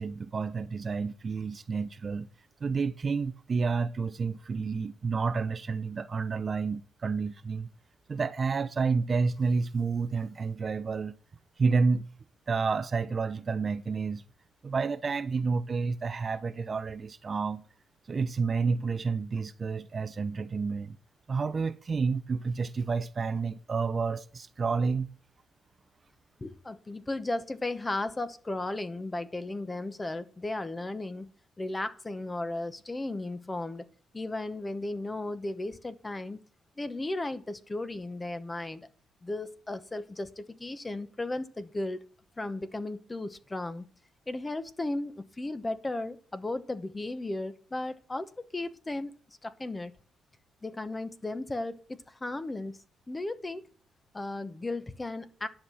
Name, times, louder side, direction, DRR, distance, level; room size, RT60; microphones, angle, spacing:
voice 1, 0.0-2.3 2.6-7.7 8.1-11.1 11.6-12.1 12.5-14.2 14.6-17.6 18.1-21.0 21.3-25.1, right 4 dB, 40° right, 0.6 m, -30 dB
voice 2, 26.4-31.3 31.6-33.9 34.1-36.4 36.8-38.9 39.2-42.0 42.4-43.8 44.3-49.1 49.4-49.9 50.6-53.7 54.1-55.5, left 2 dB, 20° left, 1.0 m, -35 dB
11.0 x 5.7 x 7.7 m
cardioid pair, 90°, 0 cm